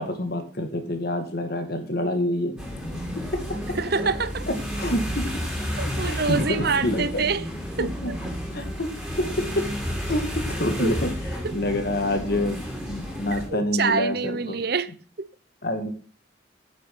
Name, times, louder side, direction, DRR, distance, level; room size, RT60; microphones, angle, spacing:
voice 1, 0.0-2.6 4.5-5.4 6.1-7.2 7.8-8.1 8.5-8.9 9.2-9.7 10.0-11.1 11.5-14.6 15.6-15.9, left 1 dB, 50° left, 2.1 m, -27 dB
sound 1, 2.6-13.5, equal, ahead, 3.5 m, -31 dB
voice 2, 3.8-4.4 5.8-7.4 7.8-8.2 10.8-11.0 11.4-11.6 13.5-14.9 15.2-15.3, right 4 dB, 55° right, 0.8 m, -26 dB
9.7 x 8.4 x 6.0 m
head